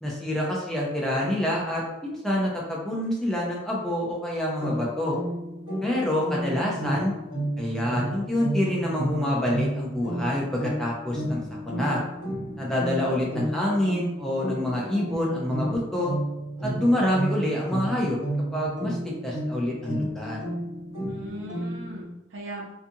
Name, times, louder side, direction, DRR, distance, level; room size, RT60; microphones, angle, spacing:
voice 1, 0.0-5.2 5.8-7.1 7.6-12.0 12.6-16.1 16.6-18.2 18.5-20.4, left 1 dB, 5° left, -4 dB, 0.5 m, -27 dB
sound 1, 4.6-22.0, right 1 dB, 75° left, 1.3 m, -32 dB
voice 2, 6.4-6.8 21.1-22.7, right 1 dB, 80° right, -3 dB, 0.7 m, -39 dB
2.5 x 2.4 x 2.6 m, 0.93 s
head